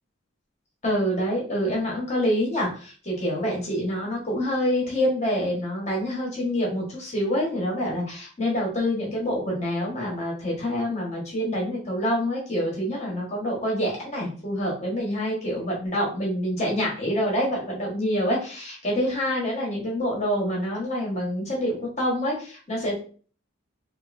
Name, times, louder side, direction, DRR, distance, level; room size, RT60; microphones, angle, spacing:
voice 1, 0.8-23.0, equal, 35° left, -2 dB, 1.2 m, -26 dB
3.7 x 2.7 x 2.5 m, 0.42 s
head